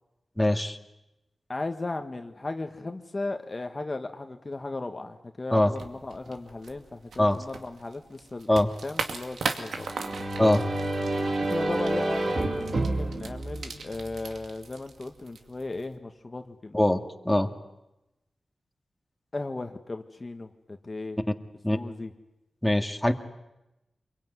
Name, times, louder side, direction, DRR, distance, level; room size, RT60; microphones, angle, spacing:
voice 1, 0.4-0.8 5.5-5.7 7.2-7.4 8.5-8.7 10.4-10.7 16.7-17.5 21.6-21.8 22.6-23.1, left 1 dB, 5° left, 4 dB, 2.1 m, -22 dB
voice 2, 1.5-9.9 11.4-16.8 19.3-21.2 21.7-22.1, left 2 dB, 35° left, 5 dB, 1.7 m, -36 dB
sound 1, 5.7-16.0, right 4 dB, 85° right, 2.3 m, -39 dB
sound 2, 9.7-14.4, right 1 dB, 55° right, 3.8 m, -29 dB
26.0 x 23.0 x 9.6 m, 0.94 s
wide cardioid pair, 75°, 0 cm